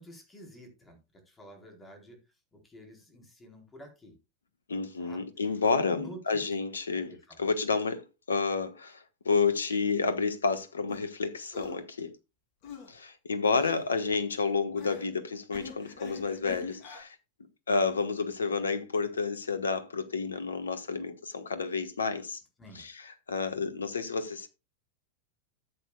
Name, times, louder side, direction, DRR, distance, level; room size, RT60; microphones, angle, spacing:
voice 1, 0.0-2.2 2.5-4.1 5.0-5.2 5.9-6.4 7.1-7.4 22.6-22.9, equal, 15° left, 4.1 m, -50 dB
voice 2, 4.7-7.1 7.4-12.1 12.9-17.2 17.7-22.4 22.7-24.5, left 4 dB, 70° left, 1.3 m, -30 dB
sound 1, 10.9-11.0 11.5-11.8 12.6-12.9 13.6-13.9 14.7-15.1 15.5-17.0, left 5 dB, 45° left, 2.8 m, -44 dB
13.5 x 8.3 x 2.3 m
figure-of-eight pair, 90°, 0 cm